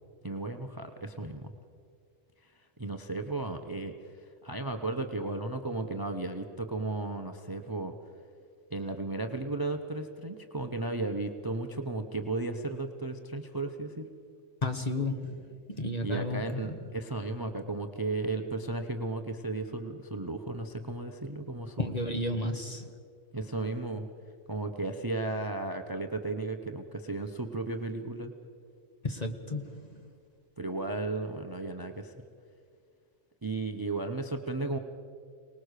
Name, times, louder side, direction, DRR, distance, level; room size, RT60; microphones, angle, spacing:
voice 1, 0.2-1.5 2.8-3.9 4.4-7.9 8.7-14.1 16.0-21.9 23.3-24.1 24.5-28.3 30.6-32.1 33.4-34.8, right 2 dB, 20° right, 7 dB, 0.8 m, -34 dB
voice 2, 14.6-16.4 21.8-22.9 29.0-30.0, left 2 dB, 30° left, 6 dB, 1.4 m, -33 dB
25.0 x 19.5 x 6.6 m, 2.2 s
omnidirectional pair, 1.4 m